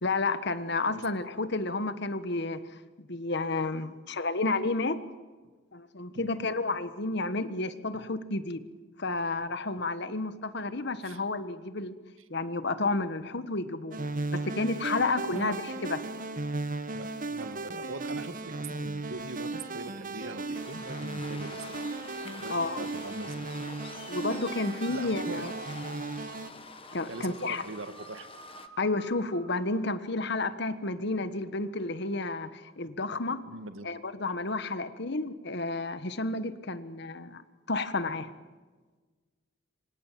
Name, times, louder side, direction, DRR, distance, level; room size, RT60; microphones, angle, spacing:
voice 1, 0.0-2.6 3.0-5.0 5.7-8.6 9.0-11.9 12.3-14.0 14.3-16.0 22.5-22.9 24.1-25.5 26.9-27.6 28.8-33.4 33.8-38.3, left 3 dB, 60° left, 12 dB, 1.4 m, -31 dB
sound 1, 13.9-26.5, right 3 dB, 45° right, 1.3 m, -36 dB
sound 2, 14.1-30.5, right 2 dB, 65° right, 6.7 m, -52 dB
voice 2, 16.9-21.7 22.4-23.4 24.9-25.5 27.1-28.3 33.5-33.9, right 2 dB, 85° right, 10 dB, 1.9 m, -42 dB
Waves surf, 20.5-28.7, left 4 dB, 30° left, 1.5 m, -47 dB
27.0 x 25.5 x 7.6 m, 1.4 s
head